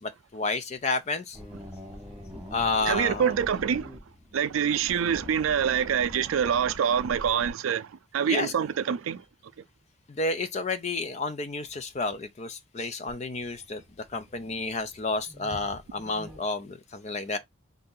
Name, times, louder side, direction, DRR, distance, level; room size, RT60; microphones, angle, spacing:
voice 1, 0.0-1.4 2.5-3.3 8.3-8.5 10.1-13.8 14.1-17.4, left 3 dB, 35° left, 0.4 m, -30 dB
sound 1, 1.3-7.5 13.1-16.4, equal, 5° right, 1.2 m, -45 dB
voice 2, 2.9-3.9 4.3-9.2, right 8 dB, 85° right, 0.4 m, -26 dB
2.8 x 2.5 x 3.7 m
head